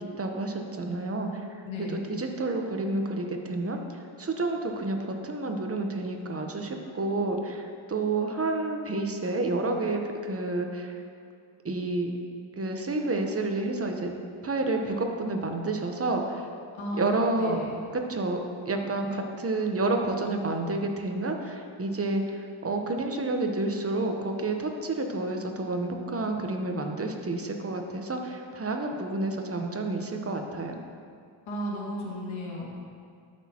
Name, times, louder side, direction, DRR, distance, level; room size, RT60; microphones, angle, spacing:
voice 1, 0.2-1.5 1.8-11.0 11.6-12.1 12.6-14.1 14.4-16.5 17.0-17.6 17.9-30.8, right 2 dB, 30° right, 4 dB, 1.0 m, -30 dB
voice 2, 1.6-2.2 16.8-17.7 31.5-32.7, left 1 dB, 75° left, -5 dB, 2.3 m, -34 dB
12.5 x 6.3 x 3.0 m, 2.2 s
cardioid pair, 80°, 49 cm